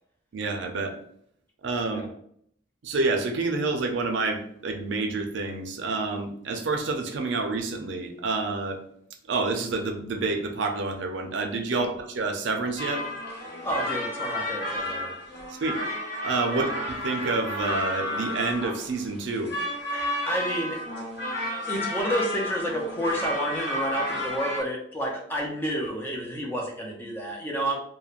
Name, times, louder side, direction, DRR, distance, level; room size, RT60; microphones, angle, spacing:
voice 1, 0.3-1.0 1.6-2.0 2.8-8.8 9.3-13.0 15.6-15.8 16.2-19.5, right 3 dB, 80° right, 4 dB, 0.4 m, -28 dB
sound 1, 12.8-24.6, left 1 dB, 70° left, 1.0 m, -32 dB
voice 2, 13.6-15.2 16.5-16.7 19.9-20.8 21.7-27.8, equal, 10° left, -1 dB, 0.4 m, -30 dB
3.1 x 2.2 x 2.4 m, 0.68 s
head